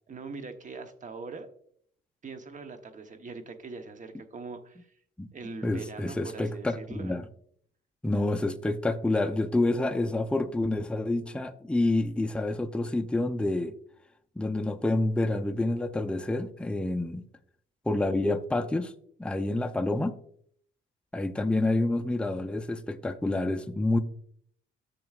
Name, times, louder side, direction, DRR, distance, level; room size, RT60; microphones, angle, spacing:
voice 1, 0.1-1.5 2.2-5.0 5.3-7.2, right 4 dB, 40° right, 1.0 m, -42 dB
voice 2, 5.6-7.2 8.0-13.7 14.4-17.2 17.9-18.9 19.2-20.1 21.1-24.0, left 2 dB, 5° left, 0.5 m, -28 dB
10.5 x 6.9 x 2.4 m
cardioid pair, 90°, 20 cm